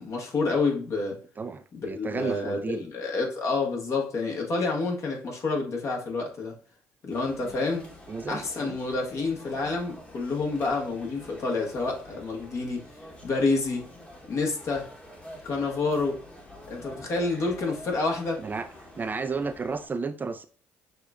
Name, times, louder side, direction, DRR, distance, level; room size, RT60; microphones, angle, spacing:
voice 1, 0.0-1.2 1.7-6.6 7.0-7.8 8.3-12.8 13.2-13.9 14.3-14.9 15.4-16.2 16.7-18.4, left 3 dB, 50° left, 1.4 m, -28 dB
voice 2, 1.4-2.8 8.1-8.8 18.4-18.7 19.0-20.4, right 4 dB, 30° right, 0.4 m, -32 dB
sound 1, 7.1-19.9, left 1 dB, 20° left, 1.2 m, -47 dB
6.4 x 2.4 x 2.5 m
hypercardioid pair, 60°, 7 cm